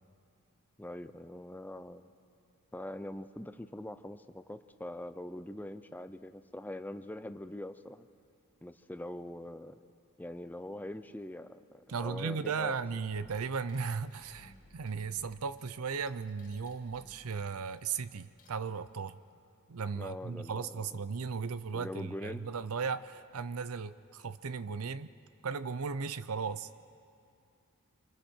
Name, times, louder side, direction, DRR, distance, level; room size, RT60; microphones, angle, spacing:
voice 1, 0.8-2.1 2.7-8.1 8.6-9.8 10.2-12.8 19.9-21.0 21.7-22.5, left 1 dB, 10° left, 10 dB, 0.5 m, -43 dB
voice 2, 11.9-19.2 19.7-25.1 25.4-26.7, right 5 dB, 70° right, 15 dB, 0.6 m, -36 dB
sound 1, 13.1-19.1 21.6-21.7 23.1-23.3 23.7-24.6, left 1 dB, 40° left, 2.0 m, -61 dB
27.0 x 25.0 x 4.5 m, 2.5 s
head